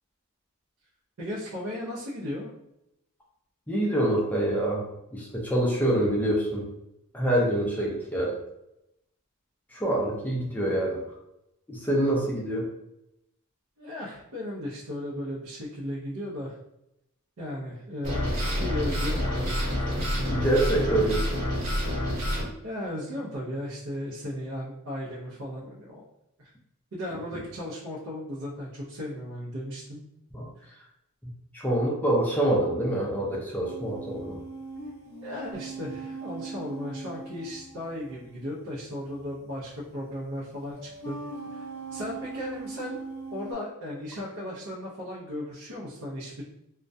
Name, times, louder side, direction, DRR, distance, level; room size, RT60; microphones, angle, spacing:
voice 1, 1.2-2.5 13.8-16.6 17.4-20.2 20.9-21.2 22.6-26.1 26.4-26.5 26.9-30.0 35.2-41.2 41.5-41.6 41.9-43.0 43.3-46.5, left 1 dB, 65° right, -7 dB, 0.6 m, -36 dB
voice 2, 3.7-4.8 5.1-6.7 7.1-8.3 9.7-11.0 11.7-12.7 20.3-21.2 30.3-30.5 31.5-34.4, right 1 dB, 10° left, -3 dB, 0.4 m, -25 dB
sound 1, 18.0-22.4, equal, 90° right, 1.1 m, -28 dB
sound 2, 33.6-38.4 39.7-39.8 40.7-43.5, right 4 dB, 50° left, 0.6 m, -40 dB
2.2 x 2.1 x 2.6 m, 0.86 s
head